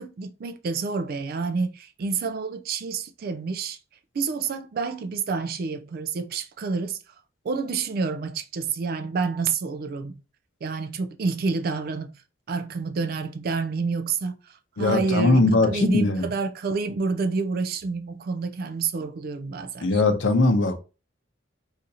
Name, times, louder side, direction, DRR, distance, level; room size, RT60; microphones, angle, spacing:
voice 1, 0.0-3.8 4.1-7.0 7.4-10.1 10.6-12.2 12.5-20.0, right 4 dB, 50° right, 0.3 m, -28 dB
voice 2, 14.8-16.3 19.8-20.8, left 2 dB, 80° left, 0.6 m, -20 dB
2.8 x 2.4 x 4.0 m
head